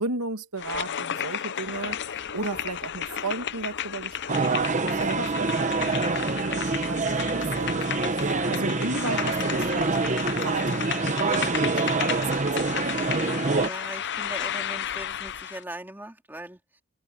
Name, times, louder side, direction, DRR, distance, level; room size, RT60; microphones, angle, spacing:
voice 1, 0.0-7.8 8.5-12.7, right 3 dB, 85° right, 2.5 m, -35 dB
sound 1, 0.6-15.6, left 9 dB, 50° left, 0.7 m, -33 dB
sound 2, 1.7-6.8, equal, 10° left, 5.7 m, -57 dB
sound 3, 4.3-13.7, right 3 dB, 35° right, 1.0 m, -26 dB
voice 2, 13.4-16.8, right 1 dB, 10° right, 2.4 m, -40 dB
head